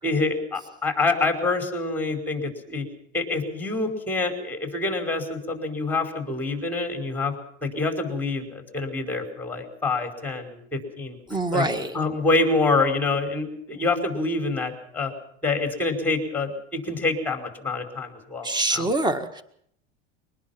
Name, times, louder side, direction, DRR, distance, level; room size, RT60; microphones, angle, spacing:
voice 1, 0.0-2.8 3.1-7.3 7.6-11.6 11.9-15.1 15.4-18.9, left 3 dB, 5° left, 4 dB, 5.2 m, -26 dB
voice 2, 11.3-11.9 18.4-19.4, right 2 dB, 15° right, 10 dB, 1.7 m, -25 dB
24.5 x 19.5 x 6.0 m, 0.69 s
supercardioid pair, 120°, 32 cm